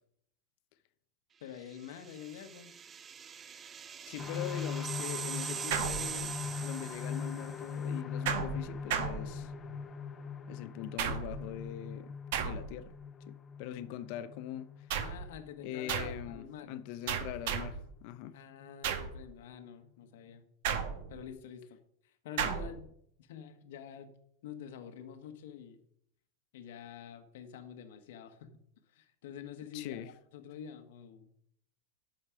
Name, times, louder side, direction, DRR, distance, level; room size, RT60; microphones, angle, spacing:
voice 1, 1.4-2.7 15.0-16.8 18.3-20.5 21.1-21.8 22.0-22.9 23.2-24.1 24.4-25.8 26.5-28.5 28.9-30.0 30.3-31.3, left 8 dB, 75° left, 1.3 m, -47 dB
sound 1, 1.7-7.7, right 8 dB, 20° right, 0.3 m, -42 dB
voice 2, 4.1-9.5 10.5-12.1 12.4-12.9 13.3-14.7 15.6-18.4 29.7-30.1, left 11 dB, 55° left, 0.7 m, -42 dB
sound 2, 4.2-17.7 18.1-18.2 18.6-18.7, left 6 dB, 20° left, 0.8 m, -41 dB
sound 3, 5.7-6.6 8.3-9.8 11.0-11.5 12.3-12.9 14.9-15.3 15.9-16.3 17.1-17.9 18.8-19.2 20.6-21.3 22.4-22.8, right 7 dB, 65° right, 1.2 m, -35 dB
10.5 x 6.5 x 4.9 m
supercardioid pair, 140°, 0 cm